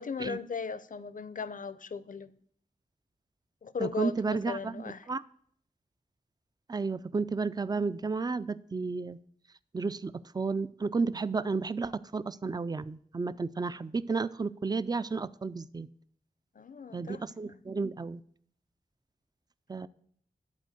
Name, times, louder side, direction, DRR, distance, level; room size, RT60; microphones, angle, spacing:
voice 1, 0.0-2.4 3.6-5.1 16.6-17.6, left 5 dB, 60° left, 0.5 m, -37 dB
voice 2, 3.8-5.2 6.7-9.2 9.7-15.9 16.9-18.2 19.7-19.9, right 4 dB, 25° right, 0.4 m, -32 dB
11.0 x 4.4 x 7.8 m
wide cardioid pair, 90°, 16 cm